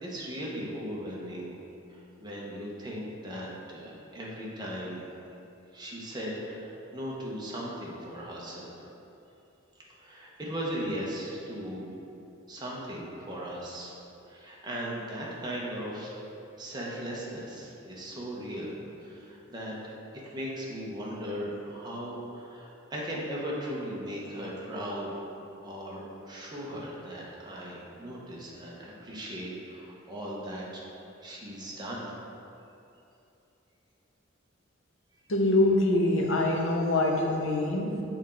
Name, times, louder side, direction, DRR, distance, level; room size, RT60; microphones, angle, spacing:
voice 1, 0.0-1.5 1.9-5.1 5.7-8.9 10.0-11.9 12.5-14.0 14.3-16.1 16.6-19.9 20.3-25.1 25.6-30.8 31.2-32.1, equal, 20° right, -5 dB, 1.0 m, -38 dB
voice 2, 35.3-38.0, left 2 dB, 75° left, 0 dB, 0.8 m, -24 dB
6.3 x 4.5 x 3.8 m, 2.8 s
head